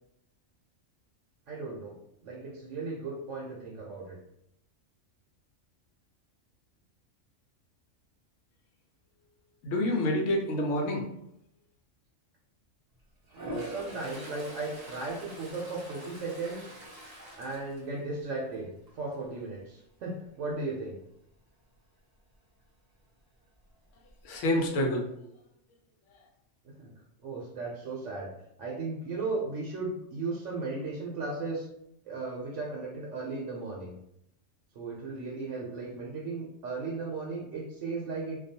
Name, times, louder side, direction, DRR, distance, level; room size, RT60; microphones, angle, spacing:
voice 1, 1.5-4.2 13.3-16.7 17.3-21.0 26.6-26.9 27.2-28.3 28.6-31.7 32.0-34.0 34.7-38.4, right 3 dB, 75° right, -3 dB, 0.9 m, -36 dB
voice 2, 9.6-11.0 24.2-25.1, left 1 dB, 80° left, 1 dB, 0.9 m, -27 dB
Toilet flush, 13.3-18.5 18.9-19.2 23.7-23.8 24.1-24.8, right 1 dB, 30° right, 0.4 m, -43 dB
2.3 x 2.3 x 2.7 m, 0.77 s
omnidirectional pair, 1.3 m